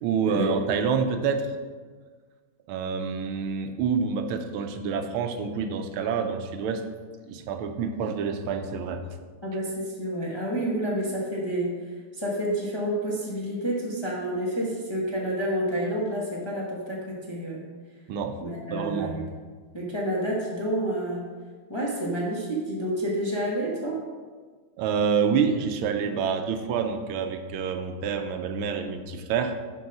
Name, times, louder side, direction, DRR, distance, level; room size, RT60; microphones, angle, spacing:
voice 1, 0.0-1.5 2.7-6.8 7.3-9.0 18.1-18.4 18.7-19.1 24.8-29.5, right 6 dB, 85° right, 7 dB, 1.5 m, -27 dB
voice 2, 9.4-11.7 12.2-17.6 18.4-19.2 19.7-21.2 21.7-24.0, right 1 dB, 20° left, -4 dB, 0.7 m, -29 dB
6.6 x 4.7 x 5.8 m, 1.5 s
omnidirectional pair, 2.3 m